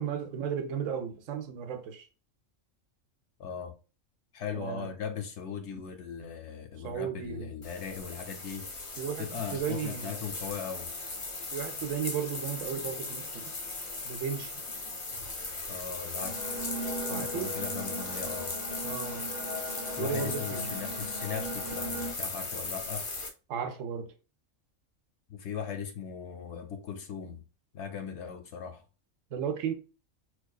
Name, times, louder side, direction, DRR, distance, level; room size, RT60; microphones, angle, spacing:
voice 1, 0.0-2.1 4.5-4.9 6.8-7.5 9.0-10.1 11.5-13.5 14.0-14.5 17.1-17.5 18.8-19.2 20.0-20.7 23.5-24.1 29.3-29.7, right 7 dB, 75° right, 0.9 m, -34 dB
voice 2, 3.4-3.8 4.3-8.7 9.2-10.9 15.7-16.5 17.1-18.6 20.0-23.1 25.3-27.4 27.7-28.8, left 7 dB, 65° left, 0.8 m, -39 dB
sound 1, 7.6-23.3, left 3 dB, 50° left, 0.3 m, -38 dB
sound 2, 16.2-22.1, equal, 25° right, 0.4 m, -38 dB
4.3 x 2.3 x 2.3 m
omnidirectional pair, 1.4 m